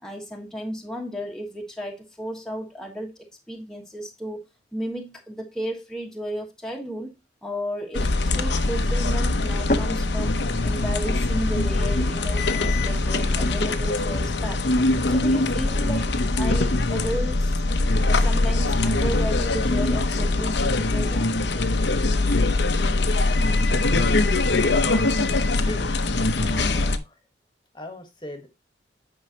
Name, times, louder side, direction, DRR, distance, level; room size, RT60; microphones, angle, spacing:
voice 1, 0.0-4.4 4.7-7.1 7.4-14.6 15.0-17.6 18.1-21.3, equal, 5° left, 1.3 m, -34 dB
sound 1, 2.6-21.9, left 1 dB, 45° left, 0.9 m, -41 dB
sound 2, 7.9-27.0, left 2 dB, 70° left, 0.9 m, -22 dB
voice 2, 26.3-27.2 27.7-28.5, left 1 dB, 25° left, 1.4 m, -38 dB
9.5 x 5.6 x 2.9 m
head